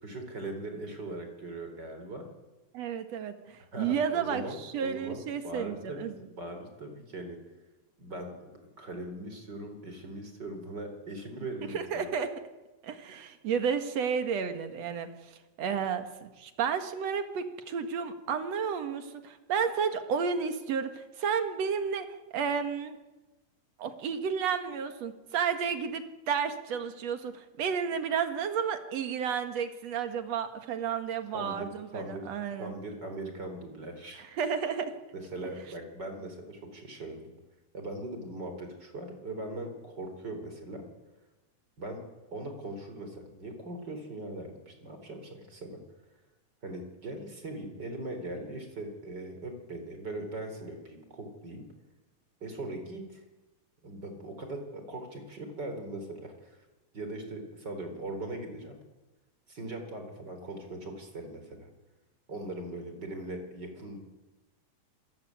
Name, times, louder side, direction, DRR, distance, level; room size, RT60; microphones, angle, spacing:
voice 1, 0.0-2.2 3.7-6.1 6.3-7.4 8.0-8.5 8.8-12.1 31.3-32.2 32.6-34.2 35.1-37.2 37.7-40.8 41.8-42.0 42.3-45.8 46.6-51.6 52.4-53.2 53.8-56.6 56.9-58.8 59.5-61.7 62.3-64.0, right 2 dB, 35° right, 6 dB, 4.4 m, -40 dB
voice 2, 2.7-6.3 11.6-12.3 12.8-15.3 15.6-23.0 23.8-32.8 34.2-34.9, right 7 dB, 60° right, 8 dB, 2.8 m, -32 dB
26.5 x 16.5 x 9.5 m, 1.1 s
omnidirectional pair, 3.4 m